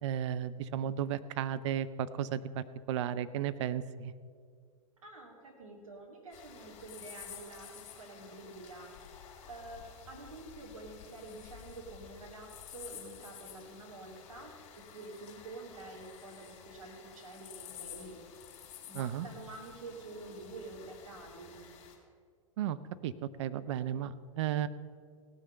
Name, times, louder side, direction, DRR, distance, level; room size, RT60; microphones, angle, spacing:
voice 1, 0.0-4.1 18.9-19.3 22.6-22.8 23.0-23.1 23.4-24.7, right 10 dB, 60° right, 13 dB, 0.6 m, -34 dB
voice 2, 5.0-8.9 9.5-14.5 14.9-18.2 18.9-21.5, right 2 dB, 75° right, -1 dB, 2.5 m, -48 dB
sound 1, 6.3-22.0, left 9 dB, 40° left, 3.2 m, -52 dB
17.5 x 6.4 x 5.6 m, 2.1 s
hypercardioid pair, 100°, 18 cm